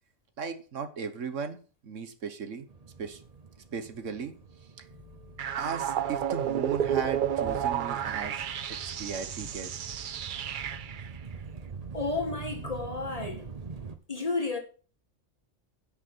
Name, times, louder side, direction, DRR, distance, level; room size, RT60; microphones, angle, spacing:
voice 1, 0.4-1.6 1.8-2.7 3.0-3.2 3.7-4.4 4.8-4.9 5.5-9.8, right 6 dB, 80° right, 1.5 m, -36 dB
sound 1, 2.7-14.0, right 5 dB, 35° right, 0.9 m, -44 dB
sound 2, 4.9-12.8, left 9 dB, 85° left, 3.1 m, -56 dB
sound 3, 5.4-11.1, right 9 dB, 55° right, 0.6 m, -31 dB
voice 2, 11.9-13.5 14.1-14.6, left 3 dB, 30° left, 1.9 m, -32 dB
10.0 x 6.6 x 6.1 m
omnidirectional pair, 1.3 m